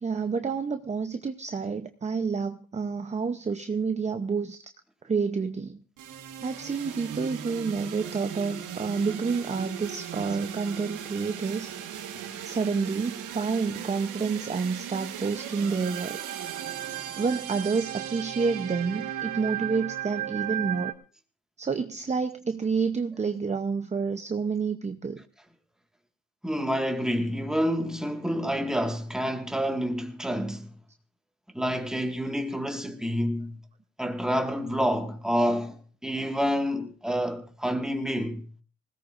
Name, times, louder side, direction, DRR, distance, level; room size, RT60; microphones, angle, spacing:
voice 1, 0.0-4.6 5.0-5.8 6.4-11.7 12.4-16.2 17.2-20.9 21.6-25.2, right 5 dB, 25° right, 0.7 m, -29 dB
sound 1, 6.0-20.9, right 10 dB, 90° right, 1.6 m, -37 dB
voice 2, 26.4-30.7 31.5-33.6 34.0-38.4, equal, ahead, 1.8 m, -28 dB
19.5 x 17.0 x 2.6 m
cardioid pair, 90°, 30 cm